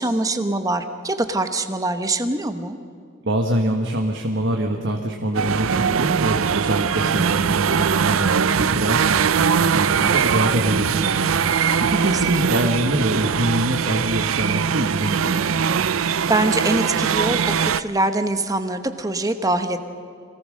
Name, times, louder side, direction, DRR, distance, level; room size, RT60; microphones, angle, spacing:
voice 1, 0.0-2.8 7.1-7.4 11.9-12.1 15.9-19.8, right 2 dB, 15° right, 8 dB, 1.0 m, -24 dB
voice 2, 3.2-15.5, right 1 dB, 60° right, 2 dB, 1.5 m, -24 dB
sound 1, 5.3-17.8, right 7 dB, 85° right, 0.5 m, -21 dB
24.5 x 18.0 x 6.5 m, 2.3 s
head